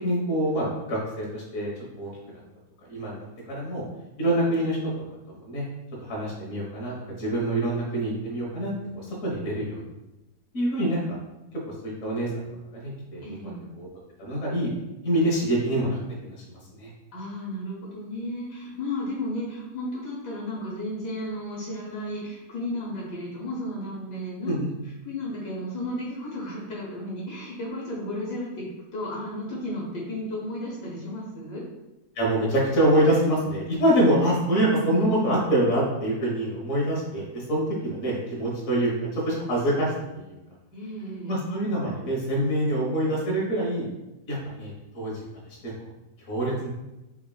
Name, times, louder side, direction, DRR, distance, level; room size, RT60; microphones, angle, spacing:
voice 1, 0.0-2.1 2.9-3.8 4.2-4.8 5.4-5.6 6.0-9.8 10.5-11.0 11.8-12.4 12.7-13.9 14.2-14.7 15.0-16.9 24.4-24.7 32.1-40.3 41.3-43.9 44.3-45.1 45.7-45.8 46.3-46.7, right 1 dB, 50° left, -4 dB, 1.5 m, -25 dB
voice 2, 13.2-13.6 17.1-24.5 25.0-28.6 28.9-31.6 40.7-41.4, left 1 dB, 75° left, -4 dB, 1.5 m, -33 dB
4.6 x 3.5 x 2.3 m, 0.97 s
omnidirectional pair, 1.8 m